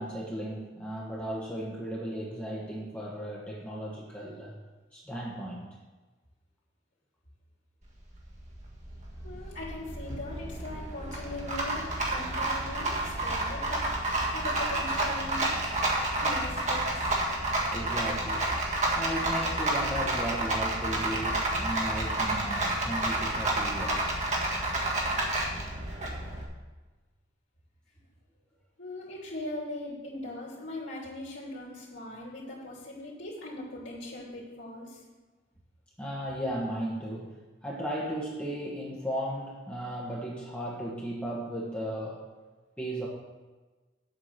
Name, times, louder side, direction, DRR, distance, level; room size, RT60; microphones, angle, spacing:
voice 1, 0.0-4.5 4.9-5.7 17.7-24.2 36.0-37.4 37.6-42.2 42.8-43.1, equal, 5° left, -5 dB, 1.4 m, -35 dB
Rattle, 7.8-26.4, right 1 dB, 40° right, 1.7 m, -30 dB
voice 2, 9.2-13.9 14.3-15.7 16.2-17.1 28.8-35.0, left 1 dB, 70° left, -5 dB, 2.8 m, -40 dB
9.6 x 8.0 x 5.9 m, 1.3 s
head